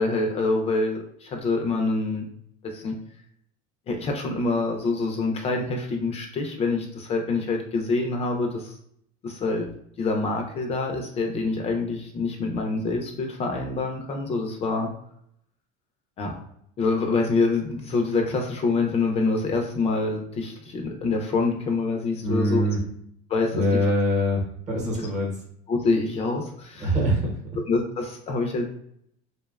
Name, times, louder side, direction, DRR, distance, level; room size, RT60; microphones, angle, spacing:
voice 1, 0.0-2.3 2.6-2.9 3.9-8.7 9.2-9.7 10.0-14.9 16.2-16.4 16.8-22.6 23.3-23.6 24.9-25.1 25.7-26.9 27.7-28.7, left 3 dB, 35° left, 2 dB, 0.4 m, -26 dB
voice 2, 22.2-22.8 23.5-25.3 26.8-27.3, equal, 40° right, 0 dB, 0.8 m, -23 dB
2.6 x 2.2 x 2.3 m, 0.69 s
cardioid pair, 135°, 19 cm